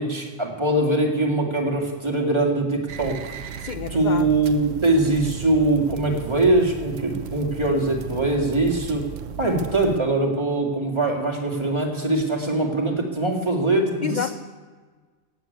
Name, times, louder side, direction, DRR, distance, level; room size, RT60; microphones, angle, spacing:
voice 1, 0.0-3.2 3.9-9.1 9.4-14.2, right 2 dB, 20° right, 1 dB, 2.0 m, -22 dB
sound 1, 2.9-10.0, right 8 dB, 85° right, 1.2 m, -36 dB
voice 2, 3.6-4.4 14.0-14.3, left 9 dB, 65° left, 11 dB, 0.4 m, -29 dB
15.0 x 7.7 x 9.2 m, 1.5 s
omnidirectional pair, 1.3 m